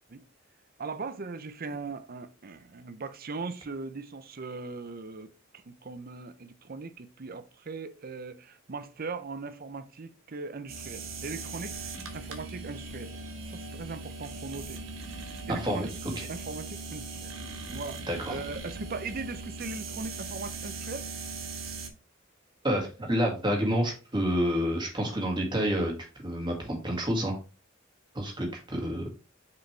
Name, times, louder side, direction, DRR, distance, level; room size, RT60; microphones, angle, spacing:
voice 1, 0.8-11.8 12.1-13.2 13.5-14.8 15.5-15.9 16.3-17.3 17.7-18.0 18.3-21.1, right 3 dB, 45° right, 0.6 m, -39 dB
sound 1, 10.7-21.9, right 3 dB, 80° right, 1.4 m, -39 dB
voice 2, 18.1-18.4 22.6-25.9 26.2-27.4 28.1-29.1, equal, 25° right, 2.2 m, -28 dB
6.3 x 5.0 x 3.4 m
head